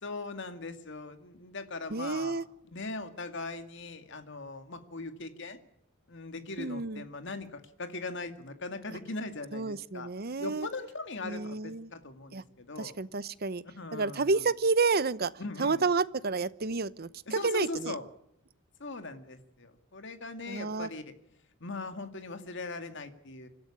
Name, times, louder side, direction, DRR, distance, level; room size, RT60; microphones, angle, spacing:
voice 1, 0.0-2.4 2.7-5.6 6.1-10.1 10.4-12.9 13.8-14.4 15.4-15.8 17.3-18.1 18.8-21.1 21.6-23.5, left 3 dB, 65° left, 8 dB, 2.3 m, -40 dB
voice 2, 1.9-2.4 6.6-7.0 9.5-10.7 11.2-11.9 12.3-12.4 12.8-13.6 13.9-15.3 15.6-17.9 20.5-20.9, right 4 dB, 50° right, 17 dB, 0.9 m, -30 dB
25.5 x 14.0 x 9.9 m, 0.74 s
head